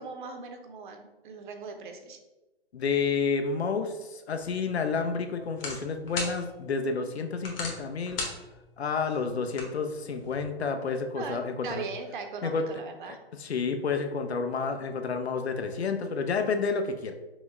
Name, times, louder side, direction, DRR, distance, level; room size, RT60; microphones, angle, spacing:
voice 1, 0.0-2.2 11.1-13.2, right 4 dB, 50° right, 5 dB, 0.7 m, -39 dB
voice 2, 2.7-8.2 8.8-11.9 12.4-12.7 13.0-17.1, left 5 dB, 85° left, 6 dB, 0.6 m, -30 dB
sound 1, 4.4-10.4, left 2 dB, 60° left, 1.4 m, -40 dB
6.0 x 2.1 x 3.5 m, 1.1 s
hypercardioid pair, 130°, 31 cm